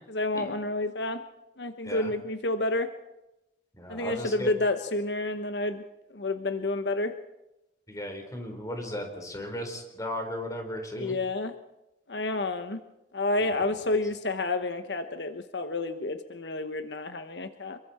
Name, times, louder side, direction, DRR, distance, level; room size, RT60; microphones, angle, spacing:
voice 1, 0.1-1.2 1.6-2.9 3.9-5.8 6.1-7.1 11.0-11.5 12.1-12.8 13.1-17.8, left 2 dB, 80° left, 8 dB, 1.3 m, -29 dB
voice 2, 3.7-4.5 7.9-11.2 13.4-14.0, equal, 20° left, 3 dB, 4.5 m, -36 dB
27.0 x 23.0 x 4.5 m, 0.90 s
head